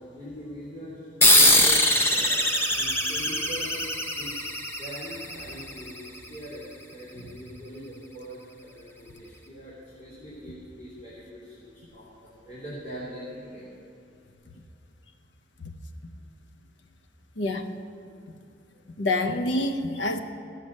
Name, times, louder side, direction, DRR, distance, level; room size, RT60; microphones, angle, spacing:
voice 1, 0.1-4.4 4.8-13.7 18.1-18.4 18.7-18.8, equal, 40° left, -10 dB, 2.9 m, -42 dB
sound 1, 1.2-6.2, left 1 dB, 15° left, 0.7 m, -22 dB
voice 2, 17.4-17.7 19.0-20.2, left 2 dB, 80° left, 8 dB, 0.8 m, -27 dB
14.5 x 6.7 x 6.4 m, 2.6 s
head